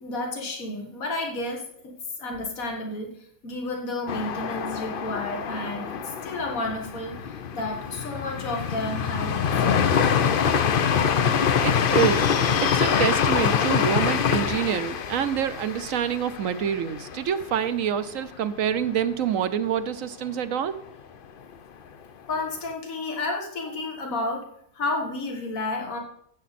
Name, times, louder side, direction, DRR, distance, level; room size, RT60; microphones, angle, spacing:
voice 1, 0.0-10.1 22.3-24.5 24.7-26.0, left 2 dB, 75° left, 1 dB, 2.2 m, -31 dB
sound 1, 4.1-17.8 18.1-18.2 18.6-19.2, left 7 dB, 50° left, 0.7 m, -25 dB
voice 2, 11.6-12.3 12.6-20.7, right 8 dB, 70° right, 12 dB, 1.1 m, -26 dB
15.0 x 7.7 x 4.2 m, 0.70 s
omnidirectional pair, 1.5 m